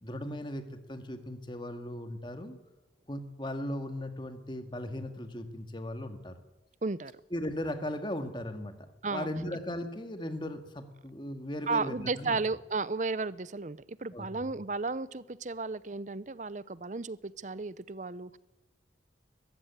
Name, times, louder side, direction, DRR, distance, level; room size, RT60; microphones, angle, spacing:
voice 1, 0.0-2.6 3.1-6.4 7.3-12.4 14.1-14.5, left 1 dB, 25° left, 8 dB, 1.9 m, -37 dB
voice 2, 6.8-7.1 9.0-9.3 11.7-18.4, right 3 dB, 40° right, 18 dB, 0.7 m, -34 dB
21.5 x 15.0 x 9.5 m, 1.0 s
head